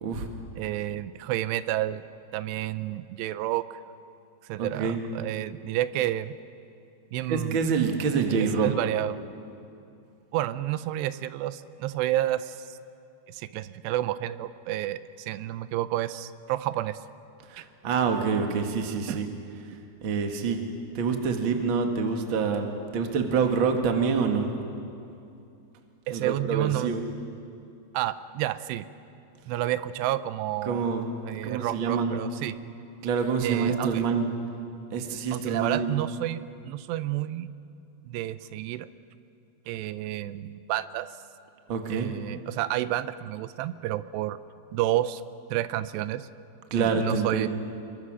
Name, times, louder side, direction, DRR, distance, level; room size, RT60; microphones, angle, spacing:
voice 1, 0.6-2.0 2.3-3.8 4.4-6.4 7.1-7.6 8.2-8.3 8.6-9.2 10.3-12.8 13.3-17.0 17.6-17.7 19.1-19.2 26.1-27.0 27.9-28.9 29.5-30.8 31.2-32.6 33.4-34.0 35.3-37.5 38.0-38.9 39.7-41.1 41.9-44.4 44.7-45.2 45.5-46.3 46.7-47.5, right 14 dB, 85° right, 14 dB, 2.8 m, -30 dB
voice 2, 4.6-5.0 7.3-8.7 17.5-19.3 20.0-20.6 20.9-24.5 26.1-27.0 30.6-32.2 33.0-34.3 34.9-35.9 41.7-42.1 46.7-47.5, right 5 dB, 45° right, 4 dB, 1.7 m, -26 dB
27.5 x 23.0 x 6.3 m, 2.6 s
omnidirectional pair, 4.8 m